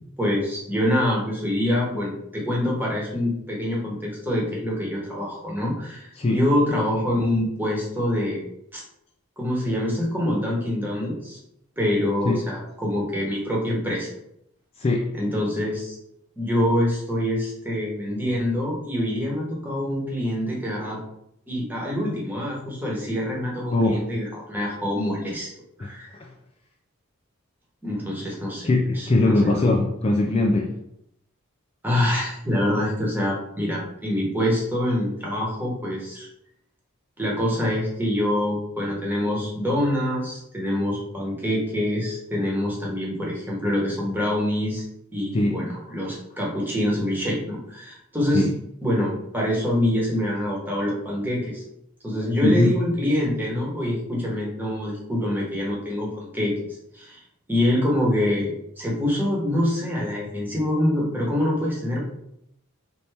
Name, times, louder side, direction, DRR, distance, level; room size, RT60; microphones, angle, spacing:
voice 1, 0.2-8.4 8.7-8.8 9.4-11.4 11.8-14.1 15.1-16.0 16.4-21.0 21.5-25.5 25.8-26.2 27.8-29.7 31.8-36.3 37.2-44.8 45.1-48.5 48.8-51.6 52.0-57.2 57.5-62.0, left 1 dB, 10° right, -3 dB, 1.1 m, -25 dB
voice 2, 14.8-15.1 23.7-24.0 25.8-25.9 26.1-26.3 28.6-30.7 45.3-45.6 48.3-48.5 52.4-52.7, left 2 dB, 25° left, 1 dB, 0.3 m, -21 dB
4.3 x 2.8 x 3.4 m, 0.77 s
head